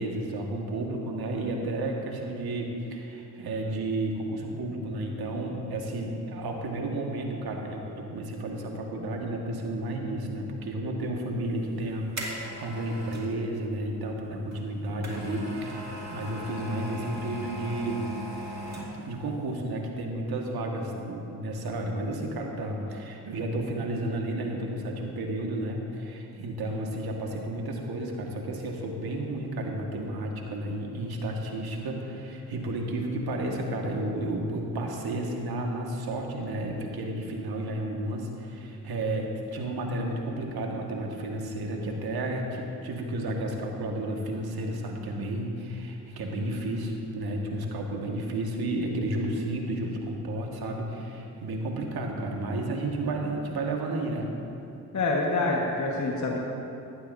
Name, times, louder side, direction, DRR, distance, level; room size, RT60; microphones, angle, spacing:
voice 1, 0.0-18.0 19.0-54.3, right 1 dB, 70° right, 1 dB, 1.7 m, -32 dB
sound 1, 11.6-13.3 14.5-19.2 19.5-19.6, equal, 40° right, 2.5 m, -38 dB
voice 2, 54.9-56.4, left 2 dB, 45° left, -2 dB, 1.5 m, -26 dB
16.0 x 11.5 x 2.7 m, 2.9 s
supercardioid pair, 60°, 39 cm